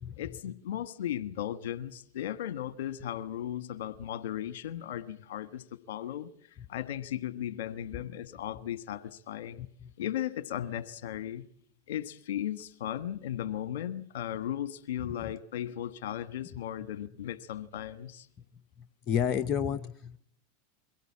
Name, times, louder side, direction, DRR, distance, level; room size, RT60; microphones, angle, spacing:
voice 1, 0.2-9.7 10.0-11.4 11.9-18.3, left 11 dB, 70° left, 1.3 m, -36 dB
voice 2, 19.1-20.2, left 8 dB, 40° left, 0.8 m, -30 dB
23.0 x 16.5 x 8.6 m
hypercardioid pair, 100°, 0 cm